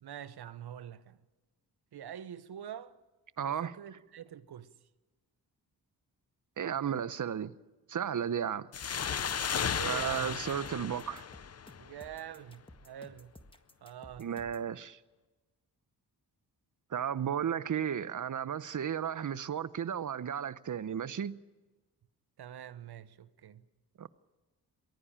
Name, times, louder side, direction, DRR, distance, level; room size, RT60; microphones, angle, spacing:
voice 1, 0.0-1.2 1.9-3.0 3.4-4.7 9.6-10.4 11.8-13.3 13.8-14.3 22.4-23.7, right 10 dB, 70° right, 1.1 m, -45 dB
voice 2, 3.4-3.7 6.6-7.5 7.9-8.7 9.8-11.2 14.2-15.0 16.9-21.4 24.0-24.1, right 8 dB, 50° right, 0.9 m, -34 dB
sound 1, 8.7-12.1, left 7 dB, 40° left, 0.7 m, -35 dB
sound 2, 9.3-14.7, left 1 dB, 15° left, 1.7 m, -55 dB
22.0 x 17.0 x 8.9 m
cardioid pair, 65°, 40 cm